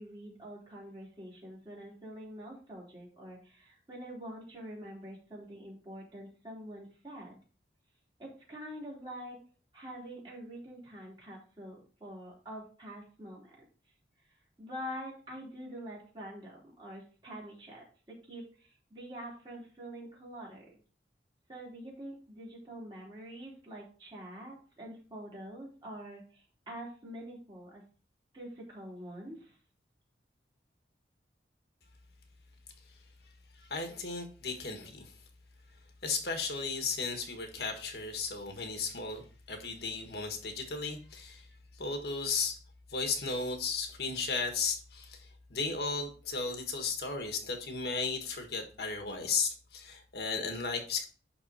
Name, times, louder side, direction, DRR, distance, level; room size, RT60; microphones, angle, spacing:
voice 1, 0.0-7.4 8.2-9.4 9.7-13.6 14.6-20.8 21.5-27.9 28.3-29.6, equal, 25° right, -4 dB, 3.2 m, -46 dB
voice 2, 33.7-35.1 36.0-39.2 39.5-41.4 41.8-42.6 42.9-45.2 45.5-51.1, left 4 dB, 60° left, 4 dB, 1.5 m, -35 dB
11.5 x 4.0 x 4.1 m, 0.38 s
head